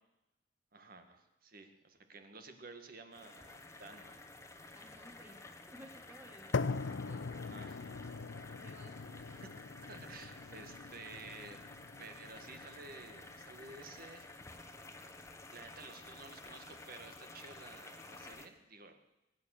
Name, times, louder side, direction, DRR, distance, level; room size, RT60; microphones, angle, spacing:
voice 1, 0.7-4.2 7.5-7.8 9.4-9.5 9.7-11.6 12.0-14.3 15.5-19.0, right 3 dB, 50° right, 7 dB, 1.9 m, -52 dB
sound 1, 3.1-18.5, left 2 dB, 15° left, 1.3 m, -52 dB
voice 2, 4.7-6.7 7.1-7.2 8.5-8.9, equal, 10° right, 3 dB, 2.4 m, -56 dB
sound 2, 6.5-14.6, left 4 dB, 75° left, 0.5 m, -42 dB
22.5 x 9.2 x 6.7 m, 0.99 s
head